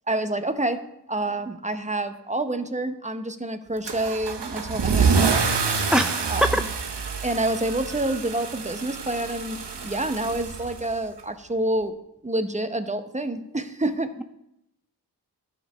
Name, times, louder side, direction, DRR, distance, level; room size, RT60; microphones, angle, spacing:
voice 1, 0.1-0.8 1.1-5.5 6.3-6.7 7.2-11.9 12.2-14.1, right 1 dB, 20° right, 9 dB, 0.8 m, -28 dB
Car / Engine starting / Accelerating revving vroom, 3.8-11.2, right 5 dB, 85° right, 0.9 m, -27 dB
voice 2, 5.9-6.5, equal, ahead, 8 dB, 0.3 m, -22 dB
12.5 x 5.2 x 5.6 m, 0.82 s
wide cardioid pair, 50°, 40 cm